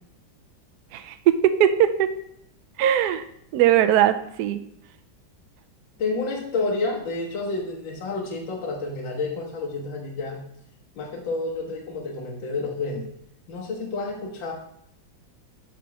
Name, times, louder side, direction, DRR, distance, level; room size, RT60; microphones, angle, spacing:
voice 1, 0.9-2.1 2.8-3.2 3.5-4.6, right 10 dB, 85° right, 11 dB, 0.8 m, -20 dB
voice 2, 6.0-10.4 11.0-13.1 13.5-14.5, left 3 dB, 70° left, -2 dB, 1.7 m, -29 dB
6.7 x 3.9 x 5.9 m, 0.72 s
omnidirectional pair, 2.2 m